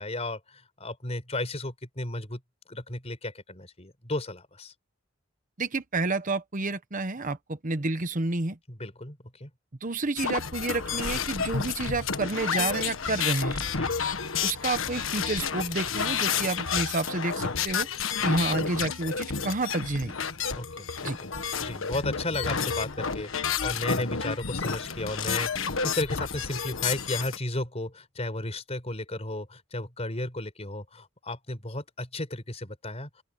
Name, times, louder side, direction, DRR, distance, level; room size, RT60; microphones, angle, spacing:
voice 1, 0.0-2.4 2.7-4.7 8.7-9.5 13.7-14.0 18.2-18.4 20.5-33.2, left 2 dB, 30° left, 4.6 m, -34 dB
voice 2, 5.6-8.6 9.8-13.6 14.4-17.9 18.2-20.1 21.0-21.2, right 2 dB, 40° right, 1.1 m, -29 dB
sound 1, 10.2-27.4, left 6 dB, 75° left, 1.5 m, -30 dB
open air
head